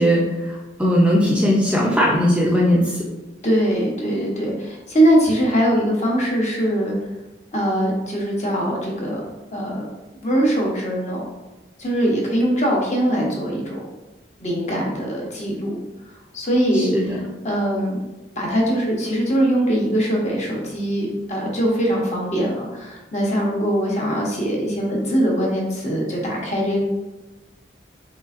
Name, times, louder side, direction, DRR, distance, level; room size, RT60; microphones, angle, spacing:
voice 1, 0.0-3.1 16.7-17.2, equal, 5° right, -4 dB, 0.5 m, -19 dB
voice 2, 3.4-6.9 7.5-9.9 10.2-11.2 11.8-13.9 14.4-15.8 16.3-17.2 17.4-18.0 18.4-26.8, equal, 40° left, -2 dB, 1.0 m, -22 dB
5.4 x 3.3 x 2.5 m, 1.1 s
head